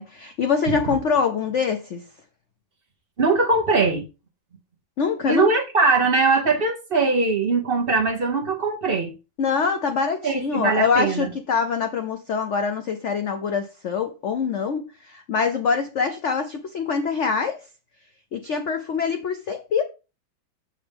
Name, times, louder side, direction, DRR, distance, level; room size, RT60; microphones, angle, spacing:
voice 1, 0.0-2.0 5.0-5.6 9.4-17.6 18.3-19.8, left 5 dB, 90° left, 0.6 m, -24 dB
voice 2, 3.2-4.1 5.3-9.1 10.2-11.3, right 4 dB, 45° right, 0.8 m, -21 dB
6.8 x 6.3 x 3.5 m
omnidirectional pair, 2.1 m